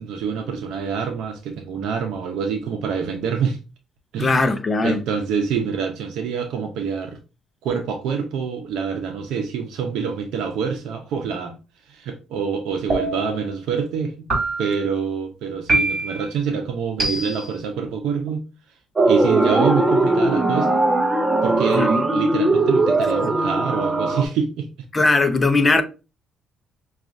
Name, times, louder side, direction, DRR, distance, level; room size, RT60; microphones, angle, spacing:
voice 1, 0.0-3.6 4.1-4.5 4.8-7.2 7.6-11.6 11.9-14.3 14.6-18.4 19.0-20.8 21.4-24.7, right 6 dB, 80° right, 0.6 m, -26 dB
voice 2, 4.2-5.0 21.7-22.0 23.2-23.3 24.9-25.8, left 3 dB, 20° left, 0.6 m, -19 dB
sound 1, 12.9-13.5 14.3-14.9 15.7-16.3 17.0-17.6, right 2 dB, 35° right, 2.3 m, -24 dB
sound 2, 19.0-24.2, right 2 dB, 20° right, 0.6 m, -19 dB
5.9 x 2.4 x 2.6 m
cardioid pair, 125°, 0 cm